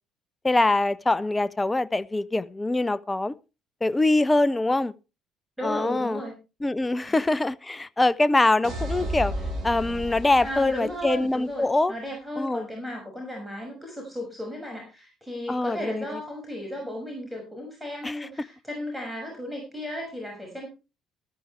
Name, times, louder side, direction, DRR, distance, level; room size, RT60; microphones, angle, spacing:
voice 1, 0.4-3.3 3.8-4.9 5.6-6.2 6.6-9.3 9.6-11.9 12.4-12.7 15.5-16.2 18.0-18.3, left 2 dB, 15° left, 0.7 m, -24 dB
voice 2, 5.6-6.3 7.0-7.2 10.4-20.7, equal, ahead, 6.2 m, -35 dB
sound 1, 8.6-11.5, right 1 dB, 55° right, 6.4 m, -33 dB
14.0 x 14.0 x 3.3 m
figure-of-eight pair, 50°, 0 cm